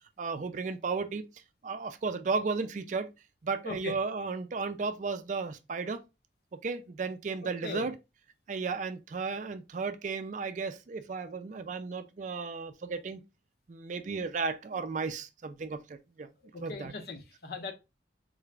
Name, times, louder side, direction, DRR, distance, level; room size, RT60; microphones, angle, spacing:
voice 1, 0.2-1.3 1.6-3.1 3.4-6.0 6.6-7.9 8.5-13.2 13.7-16.3 16.6-16.9, right 4 dB, 45° right, 0.4 m, -34 dB
voice 2, 3.6-4.0 7.4-7.9 16.5-17.7, left 3 dB, 55° left, 0.7 m, -39 dB
3.8 x 2.4 x 3.2 m
head